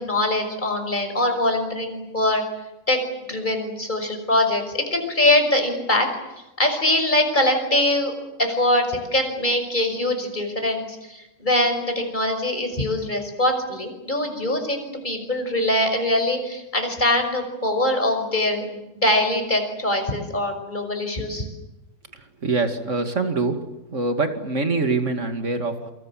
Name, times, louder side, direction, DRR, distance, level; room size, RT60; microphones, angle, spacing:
voice 1, 0.0-2.4 2.9-3.0 3.3-6.1 6.6-8.1 8.4-21.5, left 1 dB, 10° left, 5 dB, 5.7 m, -23 dB
voice 2, 22.1-23.6 23.9-25.9, right 3 dB, 25° right, 7 dB, 1.8 m, -24 dB
28.0 x 26.0 x 7.6 m, 0.94 s
omnidirectional pair, 4.4 m